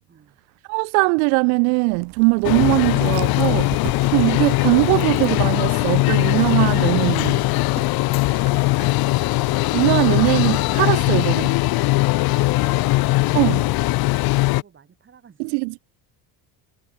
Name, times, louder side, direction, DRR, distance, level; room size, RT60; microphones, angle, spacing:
voice 1, 0.7-7.4 9.7-11.5 13.3-13.6 15.4-15.8, right 40 dB or more, 85° right, 0.8 m, -20 dB
Dog, 1.9-14.0, right 16 dB, 55° right, 5.7 m, -42 dB
sound 1, 2.4-14.6, left 21 dB, 55° left, 0.9 m, -20 dB
voice 2, 12.1-12.9 13.2-15.6, right 7 dB, 25° right, 7.2 m, -50 dB
cardioid pair, 140°, 43 cm